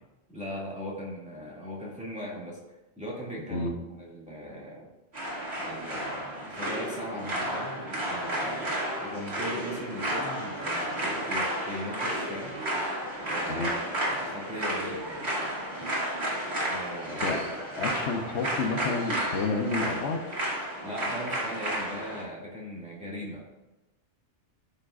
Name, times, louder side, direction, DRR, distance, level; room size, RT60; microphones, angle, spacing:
voice 1, 0.3-2.6 3.0-4.9 5.6-8.7 9.0-12.6 13.2-13.7 14.0-15.3 16.6-17.4 20.8-23.5, equal, 5° right, -6 dB, 2.3 m, -39 dB
sound 1, 5.1-22.2, right 1 dB, 70° right, 2.7 m, -32 dB
voice 2, 17.8-20.2, left 3 dB, 75° left, 3 dB, 1.1 m, -30 dB
13.0 x 5.6 x 2.5 m, 1.0 s
omnidirectional pair, 1.2 m